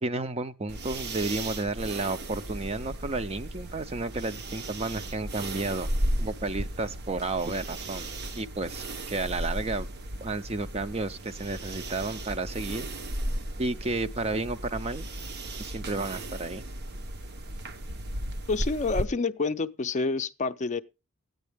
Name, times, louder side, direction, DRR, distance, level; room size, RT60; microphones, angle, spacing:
voice 1, 0.0-5.9 6.2-8.1 8.4-9.9 10.2-12.9 13.6-15.1 15.6-16.6, right 3 dB, 30° right, 0.5 m, -32 dB
sound 1, 0.7-19.1, right 1 dB, 50° right, 0.8 m, -35 dB
voice 2, 18.5-20.8, left 3 dB, 35° left, 0.5 m, -28 dB
14.0 x 9.3 x 3.4 m
head